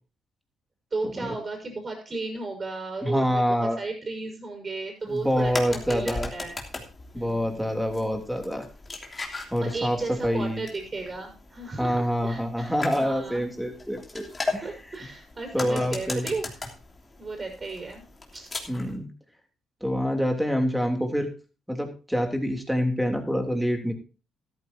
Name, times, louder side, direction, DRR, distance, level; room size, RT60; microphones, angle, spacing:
voice 1, 0.9-6.6 7.1-7.7 9.4-13.6 14.6-16.6 17.2-18.0 18.3-18.5, right 3 dB, 35° right, 1 dB, 5.5 m, -34 dB
voice 2, 3.0-3.8 5.0-6.3 7.1-8.7 9.5-10.6 11.8-14.7 15.5-16.3 18.7-19.1 19.8-21.3 21.7-24.0, equal, ahead, 4 dB, 3.2 m, -26 dB
sound 1, 5.1-19.0, left 3 dB, 25° left, 3.0 m, -38 dB
13.5 x 13.0 x 2.8 m, 0.34 s
cardioid pair, 90°, 0 cm